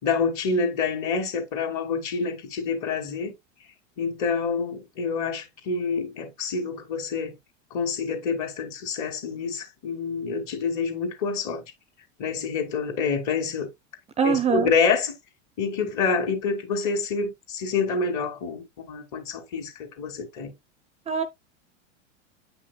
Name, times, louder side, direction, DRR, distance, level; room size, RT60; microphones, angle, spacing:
voice 1, 0.0-3.3 4.0-7.4 7.7-11.7 12.2-13.7 14.2-15.1 15.6-20.5, left 5 dB, 50° left, 2.5 m, -27 dB
voice 2, 14.2-14.7 21.1-21.2, right 6 dB, 15° right, 0.5 m, -23 dB
8.6 x 5.7 x 2.2 m
supercardioid pair, 120°, 37 cm